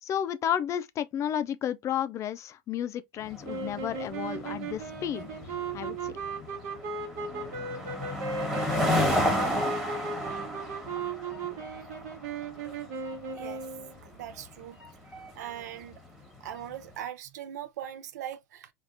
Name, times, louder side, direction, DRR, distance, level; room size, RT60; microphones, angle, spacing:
voice 1, 0.0-5.3 5.7-6.1, left 9 dB, 35° left, 0.4 m, -32 dB
sound 1, 3.2-16.7, left 1 dB, 5° right, 1.1 m, -33 dB
sound 2, 3.4-13.9, right 4 dB, 70° right, 1.1 m, -36 dB
voice 2, 13.3-13.6 14.0-14.8 15.4-16.0 16.4-18.7, right 11 dB, 90° right, 0.5 m, -40 dB
3.5 x 2.4 x 2.5 m
supercardioid pair, 120°, 9 cm